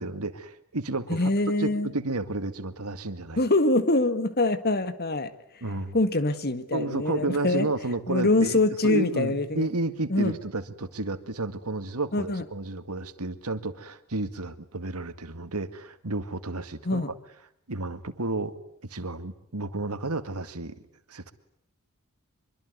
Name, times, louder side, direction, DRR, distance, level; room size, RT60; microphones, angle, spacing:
voice 1, 0.0-1.3 1.6-3.4 5.6-6.0 6.7-8.6 8.8-17.1 17.7-18.5 18.8-20.7 21.1-21.3, right 2 dB, 90° right, 10 dB, 2.0 m, -31 dB
voice 2, 1.1-1.9 3.4-5.3 5.9-7.7 8.1-9.7 10.1-10.4 12.1-12.5 16.9-17.1, left 2 dB, 45° left, 12 dB, 1.9 m, -24 dB
25.0 x 23.5 x 9.6 m, 0.71 s
head